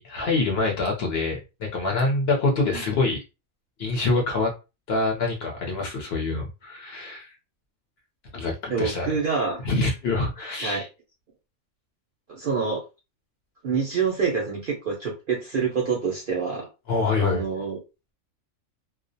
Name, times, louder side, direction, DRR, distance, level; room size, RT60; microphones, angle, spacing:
voice 1, 0.0-3.2 3.8-4.5 4.9-7.4 8.3-9.2 9.6-10.9 16.9-17.4, left 3 dB, 60° left, 0.7 m, -25 dB
voice 2, 8.7-9.6 10.6-10.8 12.3-12.8 13.6-16.7 17.2-17.8, right 5 dB, 60° right, 0.6 m, -26 dB
2.3 x 2.0 x 2.6 m
omnidirectional pair, 1.4 m